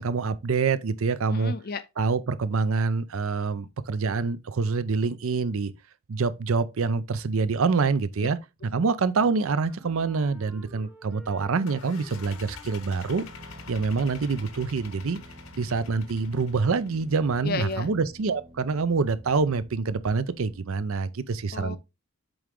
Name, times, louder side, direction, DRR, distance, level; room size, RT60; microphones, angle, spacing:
voice 1, 0.0-1.5 2.0-5.7 6.1-8.4 8.7-13.2 13.7-15.2 15.6-21.8, right 4 dB, 70° right, 0.5 m, -26 dB
voice 2, 1.3-1.8 8.2-8.3 17.4-17.9 21.5-21.8, left 4 dB, 45° left, 0.5 m, -32 dB
Wind instrument woodwind instrument, 9.2-14.3, right 3 dB, 5° right, 0.8 m, -53 dB
sound 1, 11.6-17.2, left 5 dB, 70° left, 1.0 m, -46 dB
sound 2, 13.2-20.6, right 1 dB, 20° right, 0.4 m, -49 dB
7.8 x 3.8 x 3.6 m
head